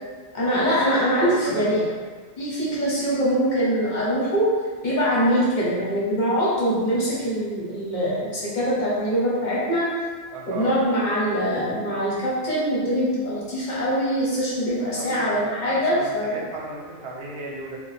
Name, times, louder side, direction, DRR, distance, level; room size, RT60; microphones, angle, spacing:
voice 1, 0.3-1.8 2.4-4.5 4.8-9.9 10.5-16.4, equal, 50° left, -7 dB, 0.9 m, -23 dB
voice 2, 1.2-1.7 10.3-10.8 14.8-17.8, right 3 dB, 70° right, -2 dB, 0.8 m, -35 dB
2.9 x 2.2 x 4.1 m, 1.5 s
omnidirectional pair, 1.1 m